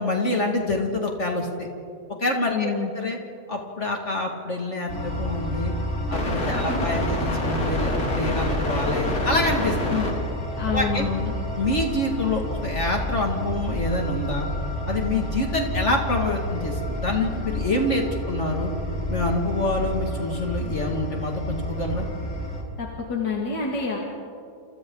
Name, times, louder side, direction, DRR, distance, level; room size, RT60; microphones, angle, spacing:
voice 1, 0.0-1.7 2.1-3.2 3.5-5.7 6.1-10.0 10.7-11.1 11.6-14.5 14.9-18.7 19.1-22.1, left 2 dB, 40° left, 1 dB, 2.5 m, -26 dB
voice 2, 2.5-2.9 6.7-6.9 9.9-10.1 10.6-11.3 22.8-24.0, left 5 dB, 85° left, -2 dB, 2.8 m, -27 dB
sound 1, 4.9-22.6, equal, 60° left, 3.5 m, -28 dB
29.0 x 28.0 x 4.0 m, 2.5 s
omnidirectional pair, 1.8 m